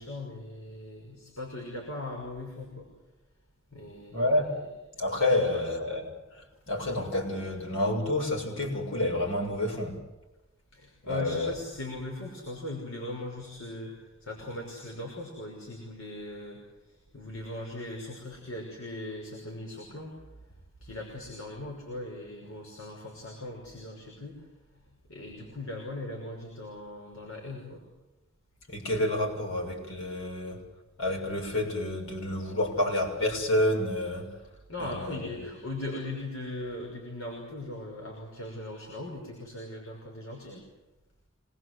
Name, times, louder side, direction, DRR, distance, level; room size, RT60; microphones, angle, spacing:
voice 1, 0.0-2.9 3.7-4.4 5.3-5.6 10.7-20.1 20.8-24.5 25.1-27.8 34.7-40.7, left 2 dB, 90° left, -1 dB, 6.0 m, -39 dB
voice 2, 4.1-4.6 5.0-6.0 6.3-10.0 11.0-11.5 28.7-30.6 31.0-34.3 34.8-35.3, left 1 dB, 70° left, 0 dB, 6.8 m, -29 dB
26.5 x 21.5 x 8.1 m, 1.0 s
head